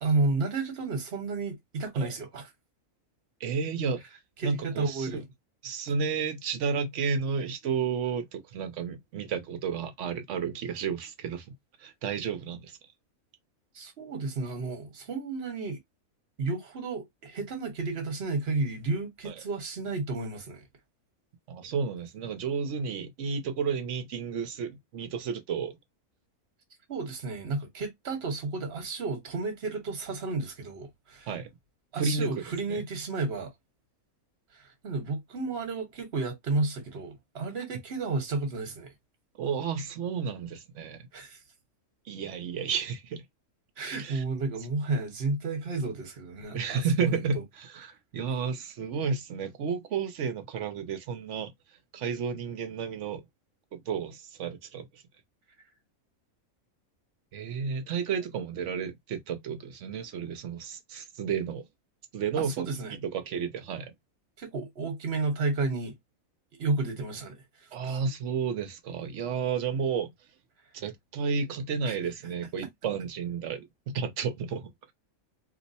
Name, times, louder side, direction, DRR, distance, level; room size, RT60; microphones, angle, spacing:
voice 1, 0.0-2.5 4.4-5.2 13.7-15.8 16.4-20.6 26.9-31.3 31.9-33.5 34.5-38.9 41.1-41.4 43.8-47.4 62.4-62.9 64.4-65.9 66.6-67.4 67.8-68.0 71.8-72.0, right 3 dB, 50° right, 1.3 m, -32 dB
voice 2, 3.4-4.0 4.4-5.2 5.6-11.5 11.8-12.8 19.2-19.4 21.5-25.8 31.3-31.5 31.9-32.4 32.7-32.8 39.4-41.1 42.1-43.2 43.9-44.2 46.5-51.5 51.9-53.2 53.7-55.0 57.3-61.6 62.1-62.7 63.0-63.9 67.7-70.1 70.7-74.9, right 6 dB, 65° right, 0.9 m, -32 dB
2.9 x 2.0 x 4.0 m
omnidirectional pair, 1.5 m